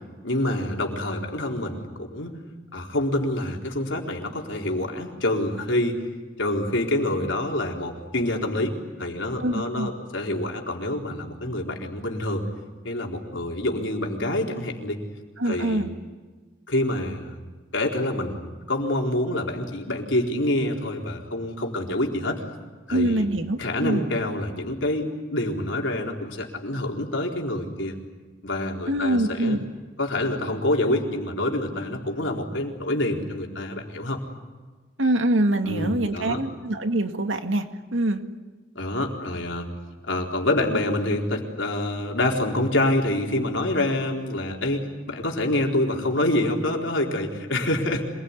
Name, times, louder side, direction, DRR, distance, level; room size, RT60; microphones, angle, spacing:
voice 1, 0.2-2.4 2.7-6.0 6.4-12.5 12.8-15.0 15.5-15.8 16.7-17.4 17.7-22.4 22.9-23.3 23.6-28.0 28.4-29.6 30.0-34.2 35.6-36.4 38.8-39.7 40.1-48.1, left 1 dB, 80° left, 1 dB, 4.2 m, -26 dB
voice 2, 9.4-9.9 15.4-15.9 22.9-24.0 28.9-29.7 35.0-38.2, right 1 dB, 85° right, 6 dB, 2.1 m, -24 dB
26.5 x 21.0 x 9.8 m, 1.4 s
head